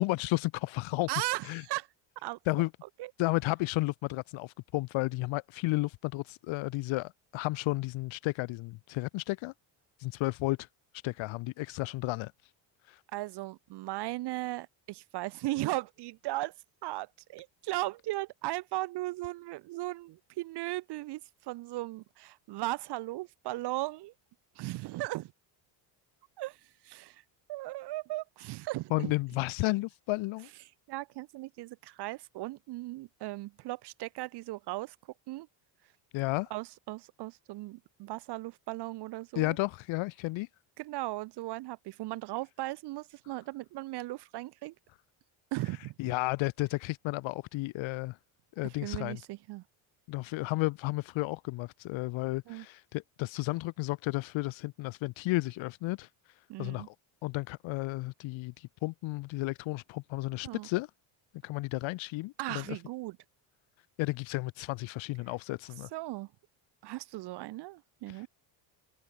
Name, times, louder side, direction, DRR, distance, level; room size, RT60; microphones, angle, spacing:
voice 1, 0.0-1.1 1.4-1.6 2.5-2.7 3.2-9.5 10.0-10.7 11.0-12.3 12.9-13.0 28.9-30.5 36.1-36.5 39.4-40.5 46.0-48.2 48.6-49.2 50.1-56.1 56.6-56.9 57.2-60.9 61.4-62.8 64.0-65.9, left 21 dB, 75° left, 1.8 m, -32 dB
voice 2, 1.1-1.9 2.2-2.4 3.0-3.1 13.1-16.5 16.8-24.1 24.6-25.3 26.4-27.2 27.5-29.1 30.9-35.0 35.3-35.5 36.5-39.6 40.8-44.7 45.5-46.1 48.6-49.6 52.5-52.6 56.5-56.9 60.4-60.7 62.4-63.2 65.9-66.3 66.8-68.3, right 18 dB, 55° right, 0.8 m, -37 dB
open air
cardioid pair, 160°, 48 cm